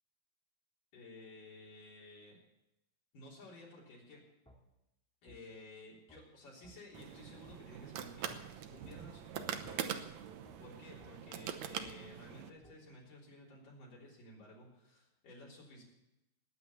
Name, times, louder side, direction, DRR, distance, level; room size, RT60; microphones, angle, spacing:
voice 1, 0.9-2.4 3.1-4.2 5.2-10.2 10.6-15.8, left 2 dB, 60° left, -5 dB, 5.1 m, -54 dB
sound 1, 4.4-4.6 5.3-5.4 6.1-6.2 6.6-6.8 7.4-7.6 8.3-8.4 8.8-9.0 9.6-9.8 10.4-10.6 11.0-11.1 11.8-11.9 12.6-12.8, equal, 5° left, 1.1 m, -60 dB
sound 2, 6.9-12.5, right 9 dB, 85° right, 1.5 m, -43 dB
20.0 x 8.8 x 7.1 m, 0.92 s
omnidirectional pair, 4.5 m